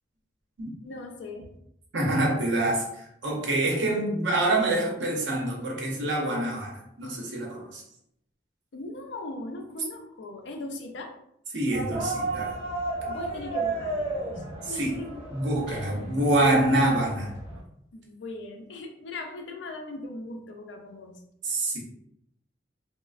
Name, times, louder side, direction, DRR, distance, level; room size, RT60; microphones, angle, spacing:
voice 1, 0.8-1.5 8.7-11.2 13.1-15.1 15.7-15.9 17.9-21.2, left 2 dB, 80° left, 4 dB, 0.5 m, -39 dB
voice 2, 1.9-7.8 11.5-12.6 14.6-15.0 15.3-17.3 21.4-21.8, right 1 dB, 85° right, -1 dB, 0.8 m, -26 dB
sound 1, 11.7-17.6, right 2 dB, 35° right, 1.1 m, -33 dB
3.1 x 2.1 x 2.3 m, 0.74 s
head